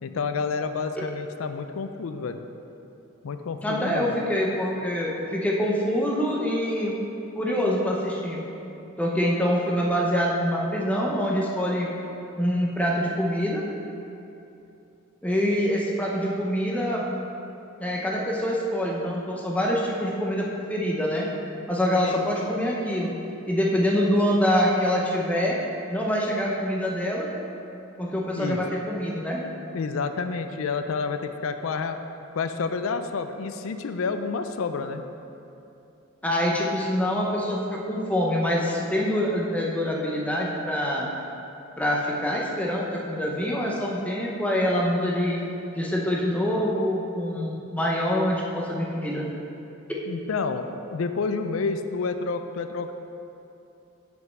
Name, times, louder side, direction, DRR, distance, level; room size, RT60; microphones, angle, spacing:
voice 1, 0.0-2.4 3.2-4.1 22.0-22.3 28.3-28.6 29.7-32.0 32.3-35.0 50.1-52.9, left 4 dB, 75° left, 8 dB, 0.4 m, -29 dB
voice 2, 3.6-6.9 7.4-8.4 9.0-11.9 12.4-13.6 15.2-17.0 17.8-21.3 21.7-23.1 23.5-25.6 25.9-27.3 28.0-29.4 36.2-41.1 41.8-45.4 45.7-49.3 49.9-50.0, equal, 5° left, -3 dB, 0.7 m, -25 dB
6.3 x 5.3 x 6.0 m, 2.8 s
head